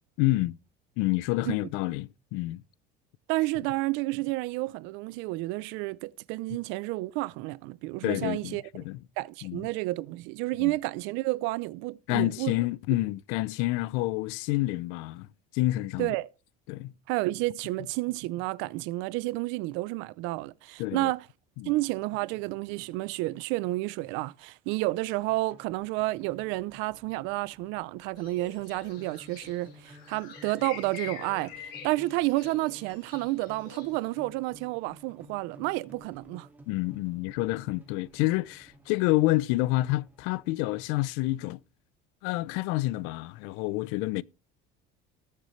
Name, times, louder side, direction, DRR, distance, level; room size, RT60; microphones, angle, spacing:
voice 1, 0.2-0.6 1.0-2.6 8.0-9.0 9.4-9.6 10.6-10.7 12.1-15.3 15.5-16.1 16.7-16.9 20.8-21.1 21.6-21.7 36.7-41.6 42.2-44.2, left 18 dB, 85° left, 0.5 m, -28 dB
voice 2, 3.3-8.6 9.2-12.6 16.0-16.3 17.1-21.3 21.6-36.5, right 20 dB, 75° right, 0.6 m, -31 dB
sound 1, 25.1-41.3, right 1 dB, 10° right, 2.1 m, -55 dB
sound 2, 28.2-34.2, left 8 dB, 55° left, 5.3 m, -46 dB
20.0 x 6.8 x 3.2 m
cardioid pair, 170°, 20 cm